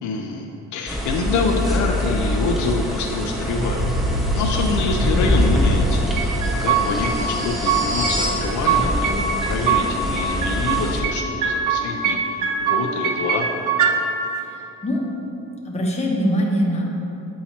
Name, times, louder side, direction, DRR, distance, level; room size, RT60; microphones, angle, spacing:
voice 1, 0.0-3.8 4.3-6.0 6.6-13.5, left 4 dB, 75° left, 2 dB, 0.5 m, -26 dB
sound 1, 0.9-11.0, equal, ahead, 0.7 m, -24 dB
sound 2, 3.6-8.4, left 1 dB, 40° right, 1.3 m, -27 dB
sound 3, 6.2-7.1 7.4-8.1 8.4-9.9 10.2-11.2 11.4-12.2 12.4-13.9, right 7 dB, 80° right, 0.6 m, -22 dB
voice 2, 14.3-15.0 15.6-16.8, equal, 20° left, -2 dB, 1.0 m, -23 dB
8.3 x 2.8 x 4.3 m, 2.9 s
cardioid pair, 90°, 30 cm